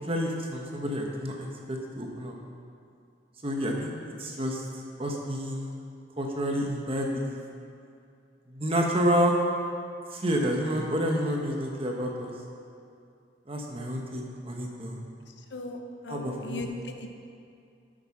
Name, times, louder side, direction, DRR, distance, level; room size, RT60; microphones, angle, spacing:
voice 1, 0.0-2.4 3.4-3.9 4.2-4.7 5.0-5.7 6.2-7.4 8.5-9.3 10.1-12.3 13.5-15.0 16.1-16.7, equal, 30° right, 0 dB, 1.1 m, -29 dB
voice 2, 16.0-17.1, left 2 dB, 65° left, 4 dB, 0.8 m, -37 dB
8.3 x 7.8 x 5.8 m, 2.5 s
head